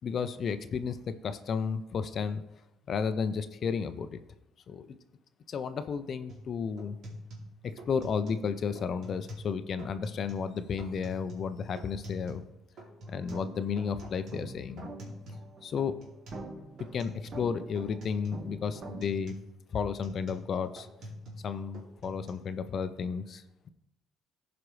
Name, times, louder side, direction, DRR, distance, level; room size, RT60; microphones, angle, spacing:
voice 1, 0.0-2.4 2.9-4.1 4.7-5.0 5.5-7.0 7.6-12.4 13.1-14.9 15.6-15.9 16.9-19.4 19.7-20.9 21.4-23.7, left 6 dB, 50° left, 11 dB, 0.5 m, -33 dB
sound 1, 6.3-6.5 6.8-8.5 8.8-9.5 9.8-10.5 10.8-12.5 12.8-15.5 15.8-16.5 16.8-17.5 17.8-18.5 18.8-21.5 21.7-22.3, equal, 65° right, 2.6 m, -46 dB
sound 2, 13.0-19.1, right 2 dB, 45° right, 1.1 m, -46 dB
14.5 x 5.0 x 3.2 m, 0.90 s
cardioid pair, 95°, 0 cm